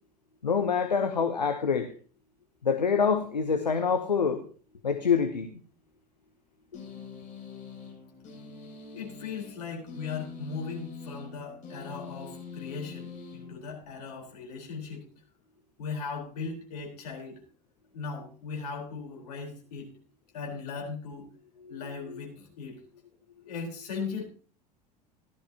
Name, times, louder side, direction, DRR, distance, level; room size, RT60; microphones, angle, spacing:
voice 1, 0.4-1.9 2.6-4.4 4.8-5.5 21.6-21.8 22.1-22.2, left 6 dB, 85° left, 8 dB, 0.9 m, -26 dB
sound 1, 6.7-14.1, left 4 dB, 35° left, 7.5 m, -44 dB
voice 2, 8.9-15.1 15.8-17.4 17.9-19.9 20.3-21.3 21.7-22.8 23.4-24.2, left 5 dB, 65° left, 0 dB, 4.2 m, -38 dB
15.0 x 12.5 x 2.9 m, 0.41 s
figure-of-eight pair, 75°, 21 cm